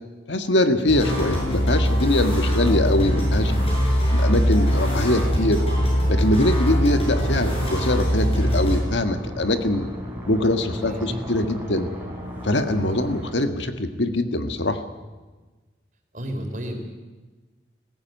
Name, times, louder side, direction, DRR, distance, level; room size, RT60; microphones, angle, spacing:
voice 1, 0.3-3.5 4.1-5.6 6.1-9.9 10.3-11.9 12.4-14.8, left 1 dB, 85° left, 8 dB, 1.7 m, -23 dB
sound 1, 0.9-8.8, equal, 30° left, 7.2 m, -22 dB
sound 2, 7.1-13.3, equal, 10° right, 3.8 m, -36 dB
voice 2, 10.7-11.2 16.1-16.8, equal, 45° right, 3 dB, 3.9 m, -32 dB
20.5 x 16.0 x 9.2 m, 1.3 s
head